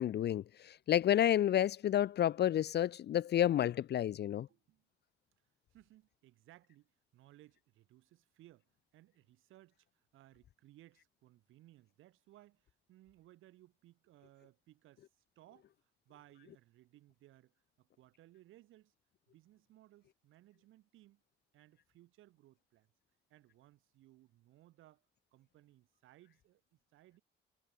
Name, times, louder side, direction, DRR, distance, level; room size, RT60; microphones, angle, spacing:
voice 1, 0.0-4.5, left 11 dB, 55° left, 0.6 m, -30 dB
voice 2, 4.5-4.9 5.7-18.9 19.3-21.2 21.5-22.9 23.3-25.1 25.3-27.2, right 15 dB, 90° right, 6.9 m, -63 dB
cardioid pair, 90°, 20 cm